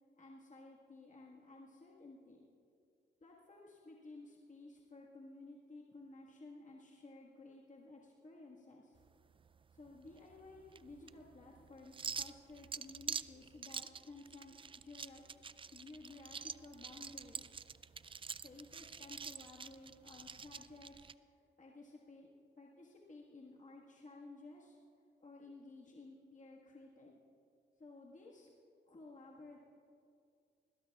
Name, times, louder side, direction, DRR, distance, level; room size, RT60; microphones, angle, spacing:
voice 1, 0.2-2.5 3.2-9.0 9.7-15.3 15.7-17.5 18.4-24.8 25.2-27.1 27.8-28.5 28.9-29.6, left 2 dB, 40° left, -3 dB, 1.7 m, -55 dB
sound 1, 9.0-21.1, right 5 dB, 25° right, 0.3 m, -47 dB
21.0 x 16.5 x 2.4 m, 2.4 s
cardioid pair, 65°, 20 cm